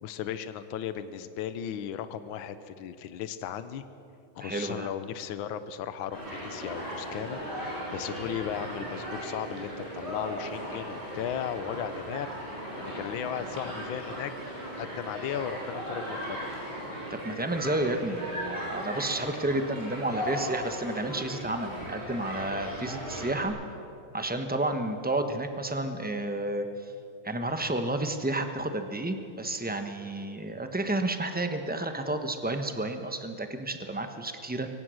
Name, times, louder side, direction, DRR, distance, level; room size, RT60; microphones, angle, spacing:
voice 1, 0.0-3.8 4.4-7.4 7.9-12.3 12.8-14.3 14.6-16.4, left 9 dB, 80° left, 12 dB, 1.6 m, -36 dB
voice 2, 4.4-4.9 17.1-23.6 24.1-26.9 27.2-34.7, right 2 dB, 10° right, 7 dB, 0.5 m, -31 dB
Human group actions, 6.1-23.5, equal, 30° right, 6.2 m, -37 dB
23.5 x 18.0 x 6.4 m, 2.7 s
omnidirectional pair, 2.2 m